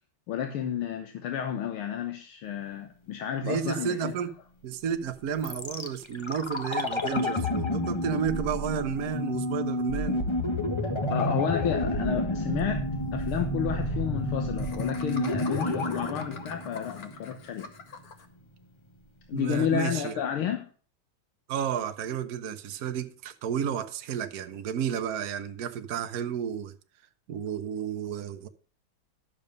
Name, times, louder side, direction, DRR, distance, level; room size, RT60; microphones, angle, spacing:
voice 1, 0.3-4.1 11.1-12.9 13.1-17.7 19.3-20.7, left 9 dB, 80° left, 1.9 m, -31 dB
voice 2, 3.4-4.3 4.6-10.3 19.3-20.2 21.5-26.7 27.3-28.5, right 8 dB, 60° right, 1.1 m, -32 dB
sound 1, 5.4-17.4 17.7-17.8, left 1 dB, 25° left, 0.6 m, -30 dB
Laughter, 12.5-12.6 12.9-13.0 13.2-13.4 14.6-18.3, left 4 dB, 50° left, 1.6 m, -45 dB
12.0 x 7.0 x 5.2 m
omnidirectional pair, 2.3 m